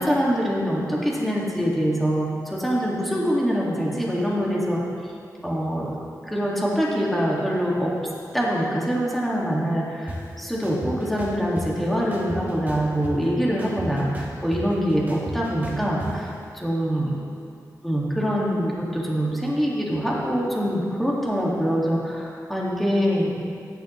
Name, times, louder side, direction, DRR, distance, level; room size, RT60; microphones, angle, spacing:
voice 1, 0.0-4.8 5.4-5.9 6.2-7.9 8.3-17.1 17.8-23.3, equal, ahead, -5 dB, 2.0 m, -24 dB
sound 1, 10.1-10.2 10.6-11.7 12.1-13.3 13.6-16.1, right 1 dB, 25° right, 1.9 m, -34 dB
15.0 x 10.0 x 3.2 m, 2.4 s
wide cardioid pair, 110°, 7 cm